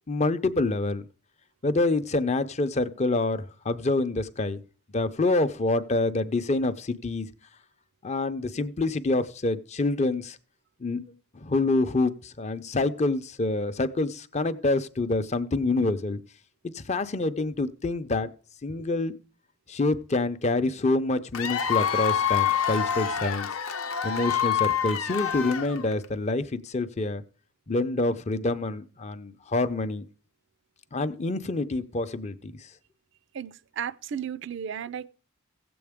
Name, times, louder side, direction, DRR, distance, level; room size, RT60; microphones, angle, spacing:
voice 1, 0.1-1.0 1.6-4.6 4.9-7.3 8.0-10.4 10.8-16.2 16.7-18.3 18.6-19.2 19.7-23.5 24.0-27.2 27.7-30.0 30.9-32.7, left 2 dB, 35° left, 0.6 m, -27 dB
Cheering / Applause / Crowd, 21.3-26.1, left 8 dB, 90° left, 0.8 m, -27 dB
voice 2, 33.3-35.1, right 8 dB, 60° right, 0.4 m, -34 dB
16.0 x 7.8 x 3.6 m
head